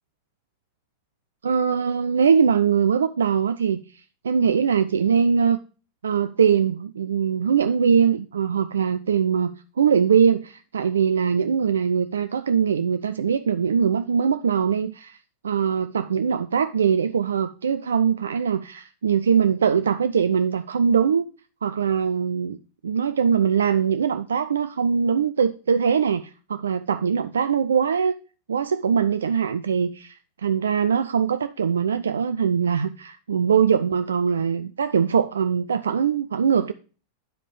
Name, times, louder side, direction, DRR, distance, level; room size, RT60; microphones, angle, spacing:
voice 1, 1.4-5.6 6.0-15.2 15.4-21.2 21.6-22.6 22.8-28.1 28.5-36.7, right 7 dB, 70° right, 0.4 m, -22 dB
10.0 x 4.9 x 5.0 m
figure-of-eight pair, 90°, 0 cm